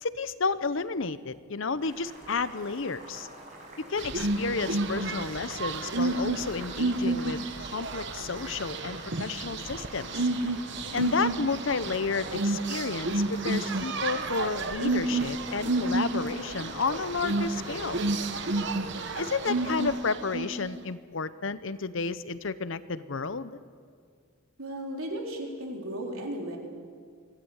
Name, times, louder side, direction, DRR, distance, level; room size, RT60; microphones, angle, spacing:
voice 1, 0.0-3.3 3.9-10.2 10.9-18.0 19.1-23.6, left 4 dB, 65° left, 14 dB, 0.8 m, -32 dB
Boiling, 1.8-20.0, right 1 dB, 35° right, 5.4 m, -45 dB
sound 1, 4.0-20.7, right 2 dB, 55° right, 1.1 m, -30 dB
voice 2, 24.6-26.6, right 1 dB, 80° right, 0 dB, 3.9 m, -35 dB
24.5 x 16.5 x 8.1 m, 2.1 s
head